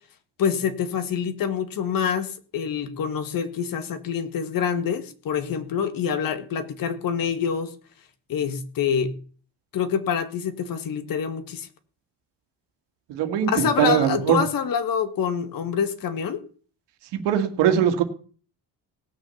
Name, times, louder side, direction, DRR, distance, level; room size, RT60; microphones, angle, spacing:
voice 1, 0.4-7.7 8.3-9.1 9.7-11.7 13.5-16.4, left 7 dB, 55° left, 10 dB, 1.8 m, -26 dB
voice 2, 13.1-14.4 17.1-18.0, right 9 dB, 85° right, 8 dB, 2.1 m, -21 dB
18.0 x 6.4 x 7.1 m, 0.42 s
cardioid pair, 120°, 40 cm